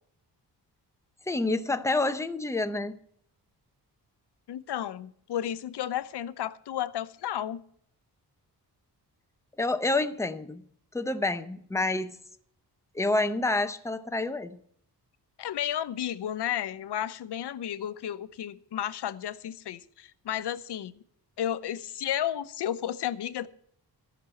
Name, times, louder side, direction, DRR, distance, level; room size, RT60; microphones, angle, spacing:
voice 1, 1.3-3.0 9.6-10.7 10.9-12.2 12.9-14.6, left 2 dB, 5° left, 9 dB, 0.7 m, -28 dB
voice 2, 4.5-7.6 15.4-20.9 21.4-23.5, left 11 dB, 85° left, 14 dB, 0.8 m, -32 dB
14.5 x 6.0 x 8.9 m, 0.66 s
wide cardioid pair, 150°, 40 cm